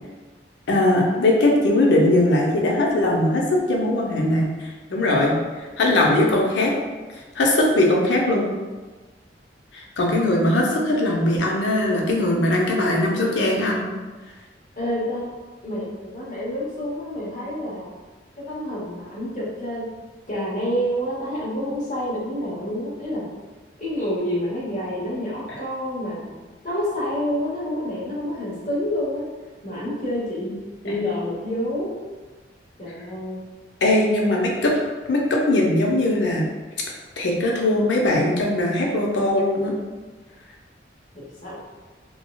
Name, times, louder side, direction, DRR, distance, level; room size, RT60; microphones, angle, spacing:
voice 1, 0.7-5.4 5.8-6.7 7.4-8.5 9.7-13.8 33.8-34.7 35.1-36.5 37.2-39.7, left 1 dB, 75° left, -1 dB, 0.6 m, -20 dB
voice 2, 14.8-15.3 15.6-17.9 18.4-19.9 20.3-23.3 23.8-26.4 26.6-29.3 29.6-30.5 30.8-31.9 32.8-33.4 41.1-41.6, equal, 45° left, -7 dB, 0.9 m, -28 dB
3.5 x 2.0 x 2.2 m, 1.3 s
head